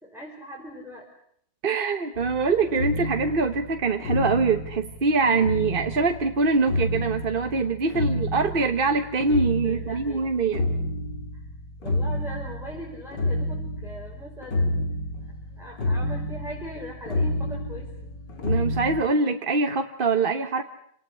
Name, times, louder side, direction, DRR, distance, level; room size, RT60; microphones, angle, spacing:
voice 1, 0.0-1.0 7.9-8.1 9.6-10.3 11.3-11.4 11.8-14.8 15.2-17.9, equal, ahead, -3 dB, 4.9 m, -40 dB
voice 2, 1.6-10.7 18.4-20.6, right 4 dB, 35° right, 7 dB, 1.1 m, -24 dB
sound 1, 2.2-19.0, left 1 dB, 70° left, 3.2 m, -30 dB
28.0 x 19.0 x 9.6 m, 0.71 s
omnidirectional pair, 2.0 m